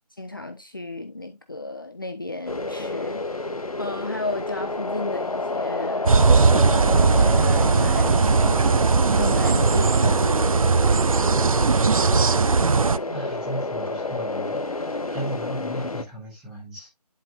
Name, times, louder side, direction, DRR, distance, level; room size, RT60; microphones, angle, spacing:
voice 1, 0.2-8.7 9.1-10.7, left 2 dB, 30° left, 0.6 m, -34 dB
sound 1, 2.5-16.0, left 3 dB, 60° left, 1.2 m, -30 dB
sound 2, 6.1-13.0, right 4 dB, 55° right, 0.4 m, -19 dB
voice 2, 11.8-16.9, right 1 dB, 5° right, 1.4 m, -37 dB
11.0 x 4.2 x 2.7 m
figure-of-eight pair, 170°, 21 cm